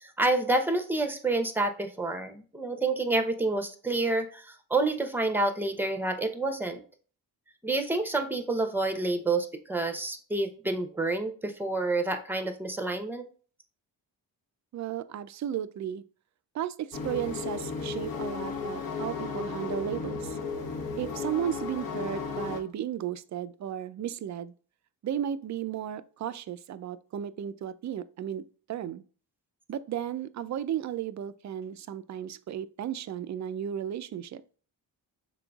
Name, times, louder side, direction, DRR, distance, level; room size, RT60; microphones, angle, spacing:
voice 1, 0.0-6.8 7.6-13.2, right 2 dB, 5° right, 0.8 m, -28 dB
voice 2, 14.7-16.0 16.5-20.4 20.9-24.5 25.0-28.4 28.7-29.0 29.7-34.4, right 10 dB, 40° right, 0.4 m, -34 dB
sound 1, 16.9-22.6, left 4 dB, 50° left, 1.0 m, -34 dB
5.9 x 3.8 x 2.3 m
supercardioid pair, 55°, 45 cm